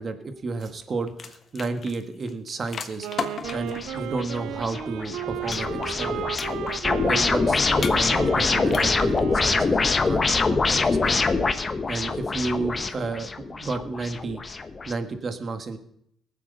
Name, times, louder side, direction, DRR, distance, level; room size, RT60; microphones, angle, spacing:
voice 1, 0.0-3.1 3.5-6.3 7.1-11.3 11.9-14.4 14.8-15.8, right 3 dB, 45° right, 8 dB, 1.6 m, -32 dB
sound 1, 0.6-0.8 1.1-3.8 5.5-6.1 6.3-6.9 7.8-8.4 8.7-9.2, left 5 dB, 50° left, 1.2 m, -35 dB
Wind instrument woodwind instrument, 2.9-10.1, right 13 dB, 85° right, 0.5 m, -35 dB
sound 2, 3.4-14.9, left 4 dB, 30° left, 1.0 m, -25 dB
19.0 x 7.6 x 5.4 m, 0.72 s
cardioid pair, 90°, 0 cm